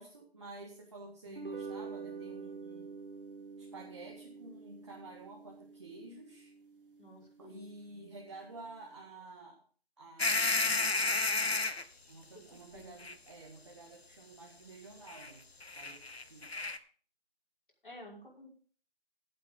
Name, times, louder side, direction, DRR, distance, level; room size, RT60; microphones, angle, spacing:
voice 1, 0.0-2.9 3.6-6.5 7.4-9.6 10.0-10.8 12.1-15.4 15.7-16.0 16.3-16.5, right 3 dB, 30° right, -1 dB, 1.8 m, -51 dB
sound 1, 1.3-7.8, right 5 dB, 60° right, 1.9 m, -47 dB
voice 2, 7.0-7.7 12.3-12.4 12.7-12.9 17.8-18.5, left 1 dB, 55° left, -3 dB, 5.6 m, -51 dB
sound 2, 10.2-11.8 13.0-13.1 15.1-15.3 15.6-16.8, left 3 dB, 90° left, 1.2 m, -31 dB
16.5 x 8.6 x 3.7 m, 0.43 s
figure-of-eight pair, 165°, 30 cm